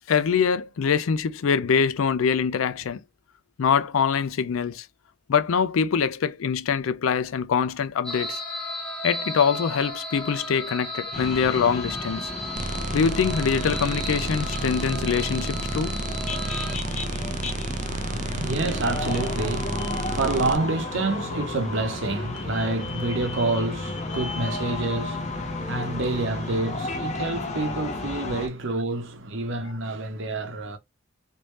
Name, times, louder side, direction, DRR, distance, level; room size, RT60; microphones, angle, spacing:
voice 1, 0.1-3.0 3.6-4.9 5.3-8.4 9.0-12.3 12.9-16.0, left 6 dB, 90° left, 0.4 m, -24 dB
sound 1, 8.0-16.8, left 1 dB, 5° left, 1.0 m, -35 dB
sound 2, 11.1-28.5, left 2 dB, 35° left, 0.8 m, -33 dB
sound 3, 12.6-20.6, right 3 dB, 40° right, 0.4 m, -31 dB
voice 2, 17.9-30.8, right 2 dB, 65° right, 0.8 m, -28 dB
3.2 x 2.6 x 3.1 m
head